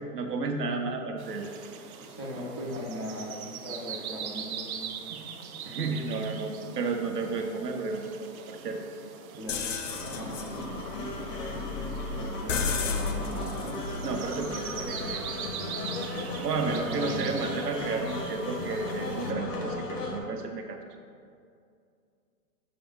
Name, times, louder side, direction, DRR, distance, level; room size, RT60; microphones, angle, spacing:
voice 1, 0.1-1.5 5.7-8.8 14.0-15.2 16.4-20.8, right 4 dB, 85° right, 3 dB, 1.0 m, -32 dB
sound 1, 1.2-19.3, right 8 dB, 65° right, 0.7 m, -42 dB
voice 2, 2.0-5.2 5.6-5.8 9.4-9.6 10.0-10.8 12.2-13.6 14.9-15.0 16.6-17.3, equal, 20° left, -7 dB, 0.3 m, -39 dB
sound 2, 9.5-15.3, left 5 dB, 55° left, 0.7 m, -34 dB
sound 3, 9.9-20.2, left 2 dB, 85° left, 1.5 m, -36 dB
6.8 x 4.7 x 3.9 m, 2.3 s
hypercardioid pair, 145°, 47 cm